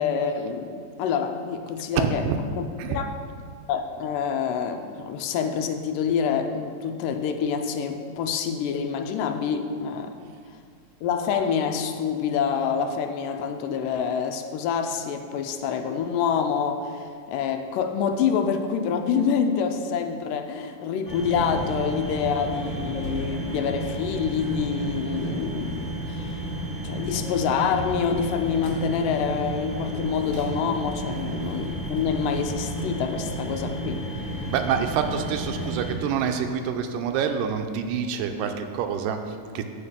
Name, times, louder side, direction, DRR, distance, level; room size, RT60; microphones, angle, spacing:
voice 1, 0.0-2.2 2.6-3.1 3.7-10.2 11.0-26.3 26.8-34.4, left 7 dB, 80° left, 7 dB, 2.2 m, -27 dB
voice 2, 2.0-2.4 2.8-3.0 31.1-31.2 34.5-39.6, right 7 dB, 85° right, 6 dB, 2.2 m, -27 dB
sound 1, 21.0-35.9, right 1 dB, 20° left, 1.2 m, -32 dB
11.0 x 4.2 x 7.2 m, 2.2 s
omnidirectional pair, 3.9 m